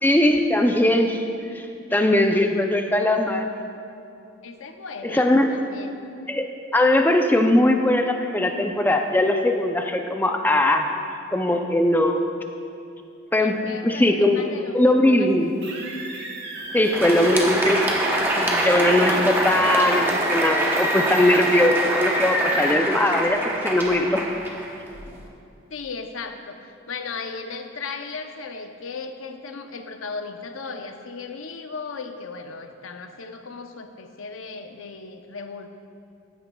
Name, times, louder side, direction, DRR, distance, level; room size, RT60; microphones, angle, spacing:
voice 1, 0.0-1.2 1.5-1.6 1.9-3.5 5.0-5.5 6.3-6.5 6.7-10.9 11.3-12.2 13.3-14.5 14.7-15.5 16.7-24.2, left 1 dB, 10° left, 4 dB, 0.4 m, -20 dB
voice 2, 4.4-6.0 13.4-15.6 25.7-35.7, left 4 dB, 80° left, 7 dB, 0.6 m, -36 dB
sound 1, 15.6-22.7, right 1 dB, 55° right, 1.2 m, -31 dB
Crowd, 16.7-25.2, right 1 dB, 10° right, 0.8 m, -25 dB
14.5 x 9.3 x 2.3 m, 2.6 s
head